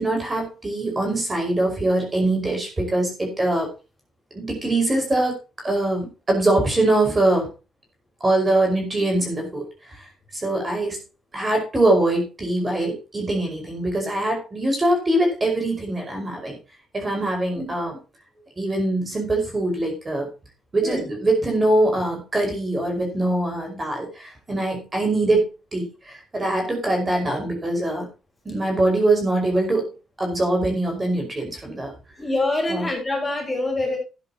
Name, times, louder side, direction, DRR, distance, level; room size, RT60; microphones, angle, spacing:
voice 1, 0.0-3.7 4.3-5.4 5.6-7.5 8.2-10.1 10.3-11.0 11.3-16.6 16.9-18.0 18.6-20.3 20.7-25.5 25.7-28.1 28.5-29.9 30.2-31.9 32.7-32.9, right 2 dB, 25° right, 2 dB, 5.1 m, -23 dB
voice 2, 32.2-34.0, left 2 dB, 15° left, 1 dB, 5.6 m, -25 dB
13.0 x 10.5 x 2.9 m, 0.30 s
cardioid pair, 125°, 0 cm